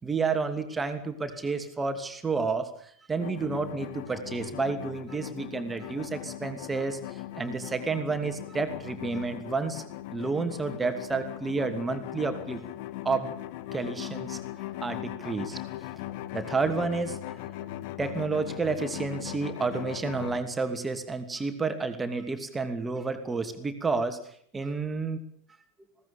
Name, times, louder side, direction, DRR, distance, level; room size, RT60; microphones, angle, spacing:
voice 1, 0.0-2.7 3.1-12.6 13.0-13.3 13.7-14.4 14.8-15.6 16.3-17.2 18.0-24.2 24.5-25.2, right 4 dB, 15° right, 8 dB, 2.8 m, -30 dB
sound 1, 3.2-20.4, left 14 dB, 45° left, 1.7 m, -39 dB
21.0 x 18.0 x 9.0 m, 0.63 s
figure-of-eight pair, 90°, 0 cm